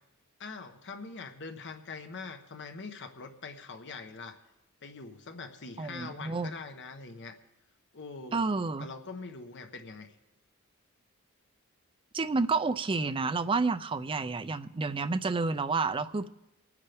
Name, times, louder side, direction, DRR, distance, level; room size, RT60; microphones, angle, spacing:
voice 1, 0.4-4.4 4.8-7.4 7.9-8.4 8.8-10.1, left 4 dB, 55° left, 6 dB, 1.1 m, -43 dB
voice 2, 5.8-6.5 8.3-8.9 12.1-16.3, right 4 dB, 25° right, 11 dB, 0.4 m, -30 dB
27.5 x 9.7 x 3.5 m, 0.95 s
head